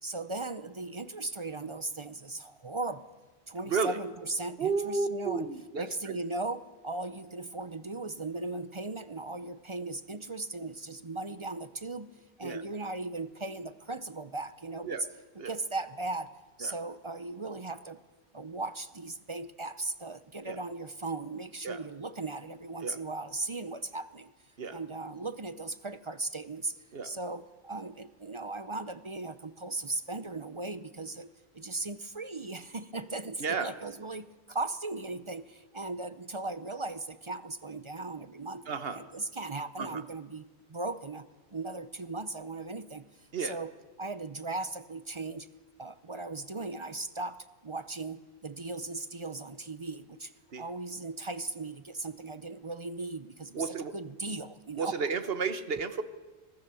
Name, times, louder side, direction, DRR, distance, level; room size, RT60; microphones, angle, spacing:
voice 1, 0.0-3.1 3.5-15.1 15.3-16.3 16.6-18.0 18.3-24.3 24.7-26.8 27.0-45.5 45.8-55.0, right 2 dB, 35° right, 13 dB, 0.6 m, -38 dB
voice 2, 4.6-6.2 12.4-12.6 14.9-15.0 15.4-15.5 16.6-16.7 20.5-20.6 21.6-21.8 22.8-23.0 24.6-24.8 26.9-27.1 33.4-33.7 38.7-39.0 39.8-40.0 43.3-43.5 50.5-50.6 53.5-53.9 54.8-56.0, right 5 dB, 60° right, 10 dB, 1.4 m, -32 dB
24.5 x 19.0 x 6.9 m, 1.3 s
omnidirectional pair, 1.1 m